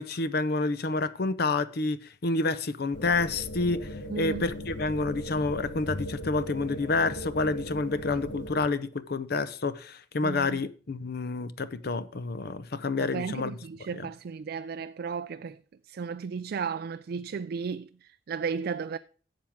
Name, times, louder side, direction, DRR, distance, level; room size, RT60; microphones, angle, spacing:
voice 1, 0.0-3.8 4.1-13.6 13.9-14.1, left 3 dB, 60° left, 0.7 m, -29 dB
sound 1, 2.9-8.7, equal, 85° left, 1.3 m, -38 dB
voice 2, 4.1-4.4 10.2-10.6 13.0-19.0, right 6 dB, 55° right, 0.3 m, -34 dB
11.5 x 7.5 x 3.6 m
head